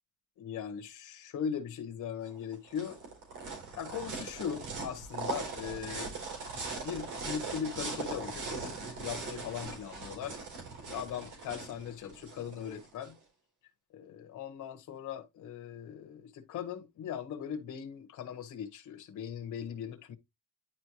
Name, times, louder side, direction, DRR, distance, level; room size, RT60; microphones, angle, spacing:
voice 1, 0.4-3.0 3.8-6.1 6.5-10.4 10.9-13.2 13.9-20.1, left 8 dB, 80° left, 1.3 m, -39 dB
sound 1, 2.3-13.1, right 4 dB, 85° right, 4.0 m, -40 dB
10.5 x 4.4 x 3.0 m
cardioid pair, 90°, 30 cm